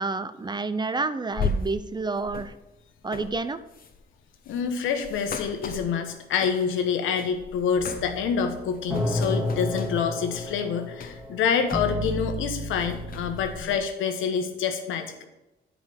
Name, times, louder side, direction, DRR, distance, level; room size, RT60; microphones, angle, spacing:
voice 1, 0.0-2.5 3.0-3.6, right 3 dB, 20° right, 12 dB, 0.5 m, -29 dB
sound 1, 1.3-6.8 7.2-8.3 8.6-12.3 12.6-13.8, left 4 dB, 45° left, 1.0 m, -37 dB
voice 2, 4.5-15.2, left 6 dB, 80° left, 7 dB, 1.2 m, -27 dB
sound 2, 7.7-13.6, left 1 dB, ahead, 2.0 m, -32 dB
8.9 x 5.0 x 5.2 m, 0.98 s
cardioid pair, 90°, 20 cm